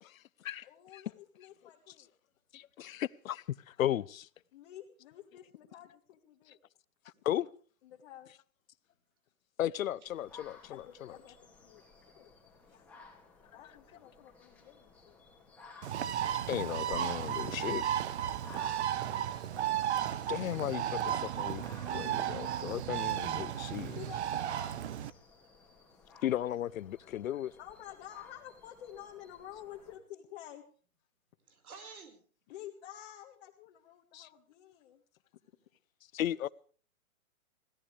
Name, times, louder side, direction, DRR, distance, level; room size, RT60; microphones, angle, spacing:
voice 1, 0.0-1.0 1.4-1.5 1.9-2.0 2.5-4.3 6.5-6.6 7.2-7.5 9.6-11.2 16.5-17.8 20.3-21.6 21.9-24.0 26.2-27.5 34.1-34.3 36.1-36.5, left 12 dB, 65° left, 0.8 m, -35 dB
voice 2, 0.6-2.1 4.5-6.6 7.8-8.3 10.6-11.8 12.1-12.3 12.7-12.9 13.5-15.2 18.9-19.2 21.7-21.8 22.3-22.7 23.5-23.6 23.9-24.7 25.9-26.2 27.6-30.6 32.5-35.0, left 11 dB, 35° left, 1.8 m, -51 dB
sound 1, 10.1-30.0, left 4 dB, 5° left, 3.2 m, -58 dB
Bird, 15.8-25.1, right 10 dB, 50° right, 1.0 m, -34 dB
voice 3, 31.5-32.2, right 5 dB, 75° right, 5.0 m, -50 dB
24.0 x 17.0 x 3.4 m
hypercardioid pair, 155°, 43 cm